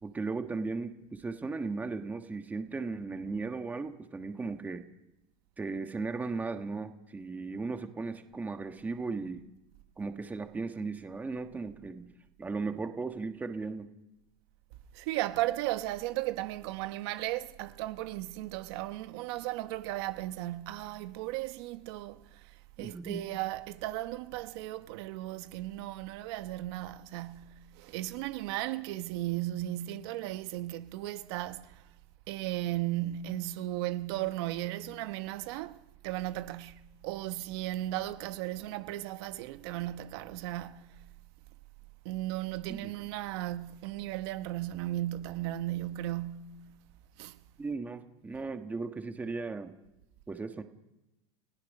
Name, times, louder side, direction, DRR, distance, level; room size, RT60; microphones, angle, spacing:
voice 1, 0.0-4.8 5.6-9.5 10.0-12.1 12.4-13.9 22.8-23.2 42.7-42.9 47.6-49.7 50.3-50.6, right 4 dB, 10° right, 1.3 m, -36 dB
voice 2, 14.9-22.5 22.8-31.8 32.3-35.8 36.0-41.0 42.0-46.7 47.2-47.4, right 15 dB, 60° right, 1.1 m, -36 dB
30.0 x 16.5 x 5.4 m
supercardioid pair, 145°, 15 cm